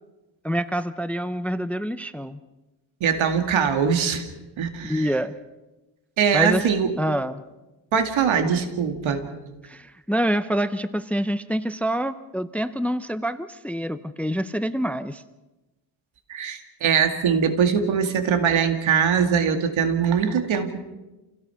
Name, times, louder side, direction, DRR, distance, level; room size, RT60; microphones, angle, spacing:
voice 1, 0.4-2.4 4.8-5.4 6.3-6.6 7.0-7.4 9.7-15.2, equal, 5° left, 13 dB, 0.6 m, -26 dB
voice 2, 3.0-4.2 4.6-5.1 6.2-6.9 7.9-9.3 16.3-20.9, right 7 dB, 80° right, 7 dB, 2.3 m, -22 dB
28.0 x 16.5 x 5.8 m, 1.1 s
cardioid pair, 110°, 47 cm